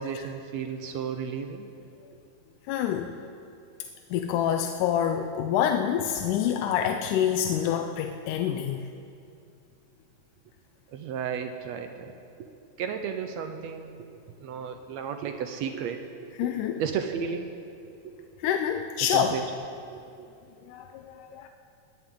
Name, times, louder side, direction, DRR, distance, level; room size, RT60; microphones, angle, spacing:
voice 1, 0.0-1.7 10.9-12.1 12.4-12.5 12.8-14.1 14.4-16.5 16.8-17.5 18.0-18.3 19.1-19.4 19.9-20.3 21.3-21.5, right 7 dB, 75° right, 6 dB, 1.7 m, -34 dB
voice 2, 2.7-3.1 4.1-8.9 16.4-16.8 18.4-19.4 20.7-21.5, left 9 dB, 80° left, 5 dB, 2.0 m, -27 dB
20.5 x 17.0 x 3.8 m, 2.5 s
omnidirectional pair, 3.8 m